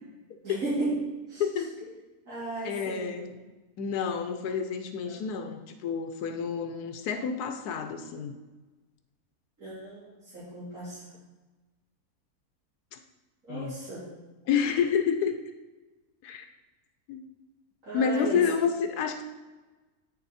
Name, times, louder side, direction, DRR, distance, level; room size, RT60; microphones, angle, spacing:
voice 1, 0.4-1.0 1.3-1.4 2.3-3.1 5.1-5.2 9.6-10.0 10.3-11.0 13.5-14.0 17.9-18.4, right 2 dB, 60° right, -12 dB, 4.0 m, -34 dB
voice 2, 1.4-2.0 2.6-3.4 3.8-8.3 12.9-13.0 13.5-13.7 14.5-15.3 16.2-16.5 17.1-17.2 17.9-19.2, left 7 dB, 90° left, 7 dB, 1.3 m, -29 dB
9.1 x 7.2 x 4.1 m, 1.2 s
omnidirectional pair, 1.6 m